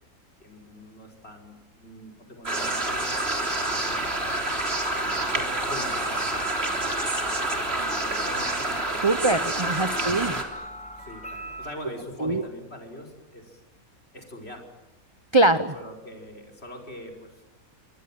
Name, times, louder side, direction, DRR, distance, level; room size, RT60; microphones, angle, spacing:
voice 1, 0.4-3.3 3.7-4.4 4.8-9.1 9.8-10.3 10.9-13.6 14.1-14.6 15.7-17.5, equal, 45° left, 2 dB, 5.7 m, -43 dB
sound 1, 2.5-10.4, right 2 dB, 45° right, 3.9 m, -28 dB
sound 2, 2.7-11.7, equal, 5° left, 3.7 m, -42 dB
voice 2, 9.0-10.3 12.2-12.4 15.3-15.7, right 2 dB, 25° right, 11 dB, 0.8 m, -22 dB
28.0 x 24.0 x 7.7 m, 1.0 s
omnidirectional pair, 1.5 m